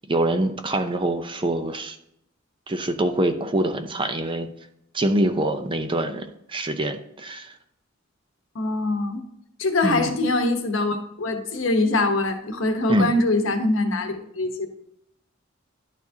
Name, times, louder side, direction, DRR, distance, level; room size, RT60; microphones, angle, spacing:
voice 1, 0.1-2.0 2.7-4.5 4.9-7.5 9.8-10.1 12.9-13.1, right 1 dB, 25° right, 8 dB, 0.6 m, -25 dB
voice 2, 8.5-9.2 9.6-14.7, left 2 dB, 70° left, 5 dB, 1.0 m, -23 dB
11.0 x 4.6 x 2.8 m, 0.77 s
head